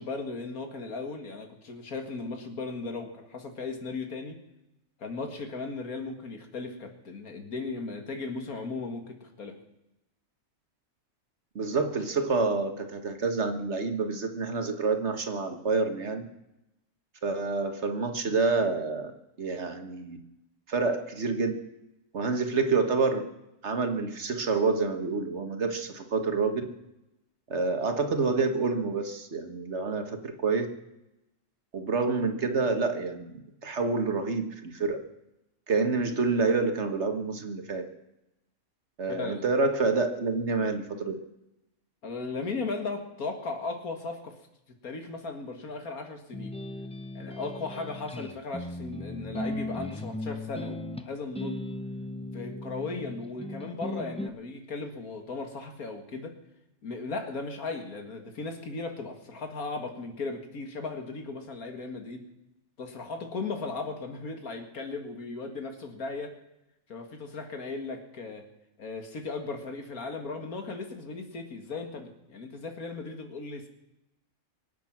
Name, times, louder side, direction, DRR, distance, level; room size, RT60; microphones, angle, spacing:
voice 1, 0.0-4.4 5.0-9.6 39.1-39.5 42.0-44.3 44.8-46.5 47.1-51.6 52.3-56.3 56.8-62.2 62.8-66.4 66.9-68.5 68.8-73.7, left 3 dB, 90° left, 5 dB, 2.4 m, -37 dB
voice 2, 11.5-16.2 17.2-19.1 19.4-20.2 20.7-21.6 22.1-23.2 23.6-26.7 27.5-30.7 31.7-33.3 33.6-35.0 35.7-37.9 39.0-41.1, right 4 dB, 55° right, 7 dB, 1.7 m, -28 dB
sound 1, 46.3-54.3, left 1 dB, 10° left, 0.3 m, -37 dB
24.5 x 8.4 x 6.0 m, 0.90 s
omnidirectional pair, 1.5 m